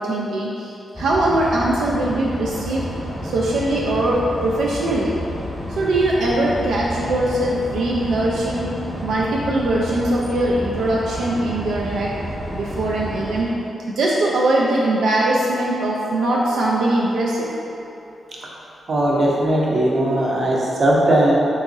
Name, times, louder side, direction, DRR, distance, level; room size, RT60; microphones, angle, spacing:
voice 1, 0.0-2.8 3.2-5.1 5.8-8.7 9.0-12.2 12.5-13.5 13.9-17.6, right 1 dB, 85° right, -4 dB, 0.3 m, -21 dB
sound 1, 0.9-13.4, equal, 5° left, 0.9 m, -31 dB
voice 2, 18.9-21.3, right 1 dB, 50° right, -4 dB, 0.6 m, -18 dB
3.5 x 2.9 x 2.5 m, 2.8 s
cardioid pair, 95°, 0 cm